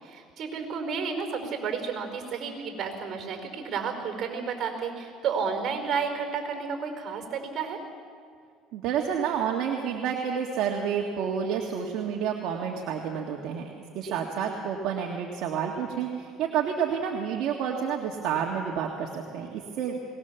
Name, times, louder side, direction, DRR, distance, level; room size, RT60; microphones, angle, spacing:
voice 1, 0.0-7.8 14.0-14.2, right 6 dB, 50° right, 5 dB, 4.8 m, -32 dB
voice 2, 8.7-16.1 16.4-20.0, right 7 dB, 65° right, 1 dB, 1.9 m, -29 dB
22.0 x 19.5 x 7.1 m, 2.2 s
supercardioid pair, 100°, 0 cm